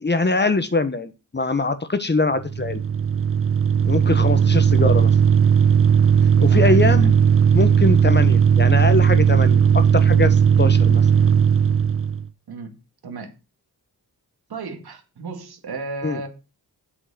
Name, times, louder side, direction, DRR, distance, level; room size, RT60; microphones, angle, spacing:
voice 1, 0.0-2.8 3.8-5.1 6.4-7.1 7.5-11.0 16.0-16.2, left 3 dB, 30° left, 1.2 m, -22 dB
sound 1, 2.4-12.3, right 7 dB, 35° right, 0.7 m, -16 dB
voice 2, 4.0-5.0 6.5-7.1 12.5-12.7 13.0-13.3 14.5-16.3, right 3 dB, 80° right, 2.2 m, -35 dB
7.8 x 6.2 x 6.3 m
cardioid pair, 75°, 37 cm